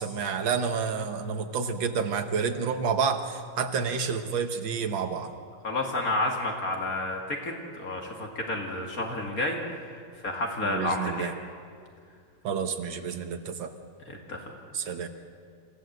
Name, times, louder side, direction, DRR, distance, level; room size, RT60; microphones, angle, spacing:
voice 1, 0.0-5.3 10.6-11.3 12.4-13.7 14.7-15.1, right 6 dB, 70° right, 7 dB, 2.0 m, -29 dB
voice 2, 5.6-9.6 10.2-11.3 14.1-14.5, left 2 dB, 45° left, 1 dB, 2.4 m, -30 dB
27.0 x 15.5 x 7.9 m, 2.2 s
omnidirectional pair, 2.3 m